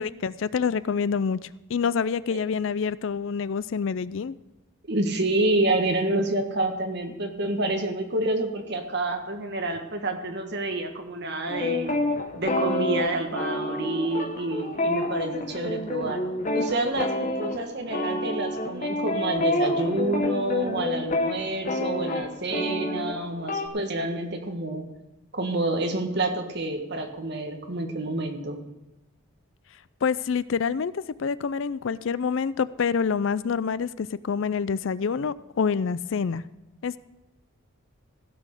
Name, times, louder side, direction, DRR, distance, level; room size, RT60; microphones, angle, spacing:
voice 1, 0.0-4.3 30.0-36.4 36.8-37.0, left 6 dB, 60° left, 17 dB, 0.4 m, -27 dB
voice 2, 4.9-11.9 12.3-16.2 16.5-24.9 25.3-28.6, right 2 dB, 50° right, 4 dB, 1.6 m, -28 dB
sound 1, 11.5-23.7, left 1 dB, 35° left, 1.1 m, -28 dB
16.0 x 6.2 x 6.6 m, 1.0 s
head